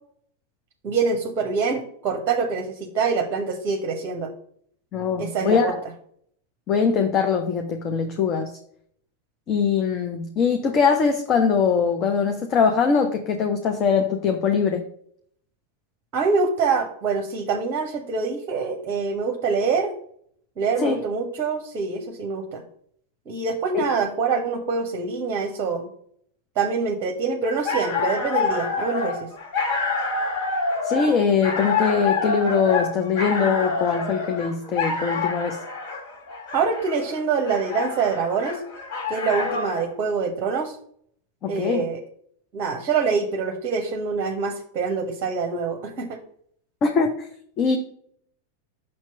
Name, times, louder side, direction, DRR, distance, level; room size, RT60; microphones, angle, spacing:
voice 1, 0.8-4.3 5.2-5.7 16.1-19.9 20.6-22.6 23.3-25.9 26.6-29.3 36.5-38.6 39.1-40.7 41.5-42.0 42.5-46.2, right 5 dB, 35° right, 4 dB, 0.8 m, -25 dB
voice 2, 4.9-5.8 6.7-8.6 9.5-14.8 20.8-21.0 23.7-23.8 30.8-35.6 41.4-41.8 46.8-47.3 47.6-47.8, left 6 dB, 35° left, 5 dB, 0.6 m, -22 dB
sound 1, 27.4-39.9, left 4 dB, 50° left, 2.7 m, -27 dB
6.4 x 2.9 x 5.7 m, 0.64 s
figure-of-eight pair, 90°, 0 cm